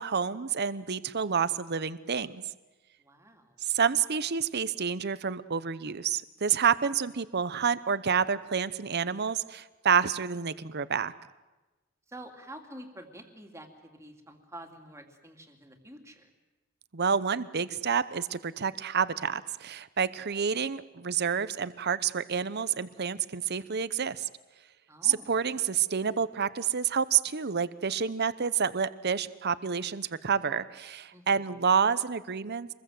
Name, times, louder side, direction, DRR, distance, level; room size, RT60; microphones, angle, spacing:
voice 1, 0.0-2.4 3.6-11.1 16.9-24.2 25.0-32.7, right 6 dB, 50° right, 15 dB, 0.8 m, -28 dB
voice 2, 3.0-3.6 12.1-16.3 24.9-25.3 31.1-31.5, right 1 dB, 15° right, 4 dB, 2.7 m, -48 dB
26.0 x 21.5 x 7.8 m, 1.1 s
head